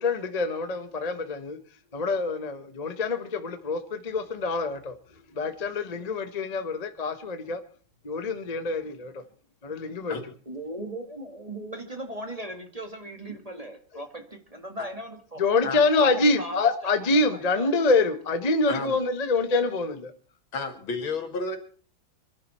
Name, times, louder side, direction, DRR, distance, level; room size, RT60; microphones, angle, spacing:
voice 1, 0.0-1.6 1.9-4.9 5.4-7.6 8.0-9.1 9.6-10.1 15.4-20.1, left 3 dB, 25° left, 1.0 m, -26 dB
voice 2, 10.5-15.7 16.0-16.7 17.3-17.7, right 1 dB, 20° right, 1.9 m, -38 dB
voice 3, 20.5-21.6, left 3 dB, 85° left, 2.9 m, -31 dB
26.5 x 11.5 x 4.3 m
omnidirectional pair, 2.2 m